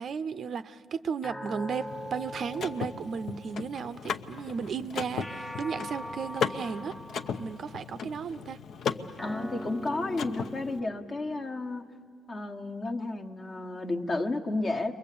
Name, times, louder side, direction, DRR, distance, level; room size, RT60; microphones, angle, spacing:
voice 1, 0.0-6.9 7.4-8.6, right 6 dB, 50° right, 13 dB, 0.6 m, -34 dB
sound 1, 1.2-3.8 5.2-7.7 9.2-11.8, equal, 5° left, 0.6 m, -41 dB
Car / Mechanisms, 1.9-10.8, left 6 dB, 55° left, 0.8 m, -37 dB
voice 2, 9.2-11.8 12.3-14.9, left 2 dB, 35° left, 3 dB, 1.4 m, -32 dB
29.5 x 22.5 x 8.5 m, 2.1 s
cardioid pair, 140°, 0 cm